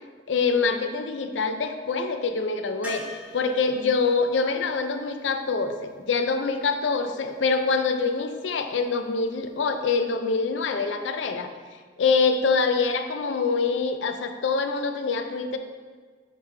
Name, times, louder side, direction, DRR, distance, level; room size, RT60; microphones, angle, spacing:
voice 1, 0.3-3.0 3.3-11.5 12.0-15.6, left 4 dB, 80° left, 7 dB, 0.5 m, -25 dB
sound 1, 2.8-6.7 9.4-9.5 9.7-9.8, left 2 dB, 10° right, 1.1 m, -43 dB
9.1 x 3.2 x 3.3 m, 1.5 s
head